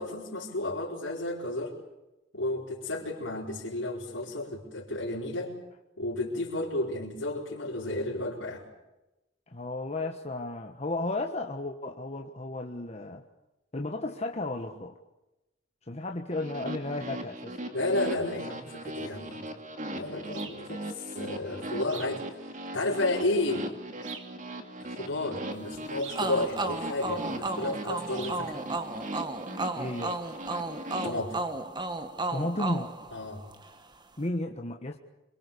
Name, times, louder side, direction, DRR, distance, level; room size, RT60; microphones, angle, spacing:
voice 1, 0.0-1.7 2.3-5.5 6.0-8.6 17.7-19.4 19.9-22.2 22.7-23.7 24.8-28.6 31.0-31.4 33.1-33.4, left 2 dB, 80° left, -5 dB, 4.6 m, -32 dB
voice 2, 9.5-13.2 13.7-14.9 15.9-17.6 29.8-30.2 32.3-32.9 34.2-35.0, left 2 dB, 35° left, 3 dB, 1.4 m, -33 dB
sound 1, 16.3-31.1, right 1 dB, 40° right, 2.7 m, -39 dB
sound 2, 20.3-20.7 21.9-22.2 24.0-24.4 26.0-26.3 28.1-28.5, right 7 dB, 80° right, 2.7 m, -44 dB
sound 3, 26.1-33.7, right 2 dB, 25° right, 1.6 m, -34 dB
26.5 x 24.0 x 7.0 m, 0.98 s
head